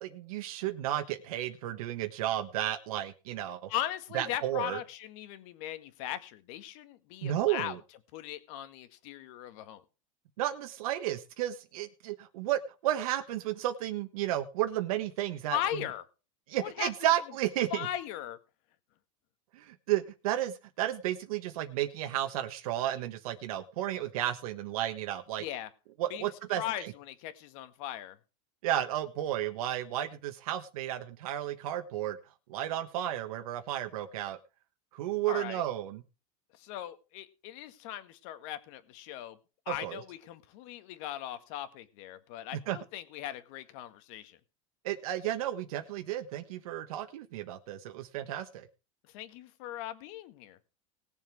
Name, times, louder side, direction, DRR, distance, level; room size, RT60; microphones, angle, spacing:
voice 1, 0.0-3.7 4.1-4.8 7.2-7.7 10.4-15.6 16.5-17.9 19.5-25.4 26.0-26.9 28.6-32.2 32.5-34.4 34.9-36.0 39.8-40.0 42.7-42.8 44.8-48.7, right 12 dB, 80° right, 5 dB, 1.3 m, -33 dB
voice 2, 3.7-7.8 8.1-9.8 15.5-16.0 16.6-16.9 17.7-18.4 25.4-25.7 26.1-28.2 35.3-35.6 36.5-39.4 39.7-44.4 49.1-50.6, left 12 dB, 65° left, 11 dB, 1.8 m, -39 dB
19.0 x 7.3 x 4.7 m, 0.33 s
supercardioid pair, 125°, 18 cm